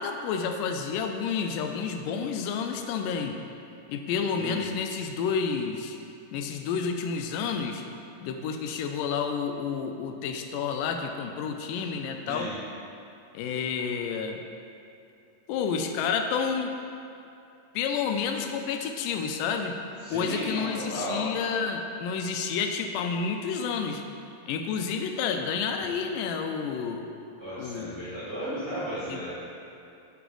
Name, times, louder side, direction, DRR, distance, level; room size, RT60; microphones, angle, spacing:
voice 1, 0.0-3.4 3.9-6.0 6.3-7.8 8.2-12.5 13.3-14.4 15.5-16.7 17.8-19.8 20.1-24.0 24.5-27.1 27.6-28.0 29.1-29.2, left 6 dB, 85° left, 5 dB, 2.1 m, -30 dB
voice 2, 4.4-4.7 12.3-12.6 20.0-21.2 27.4-29.3, right 1 dB, 20° left, -13 dB, 0.7 m, -34 dB
10.0 x 5.0 x 3.8 m, 2.6 s
omnidirectional pair, 3.7 m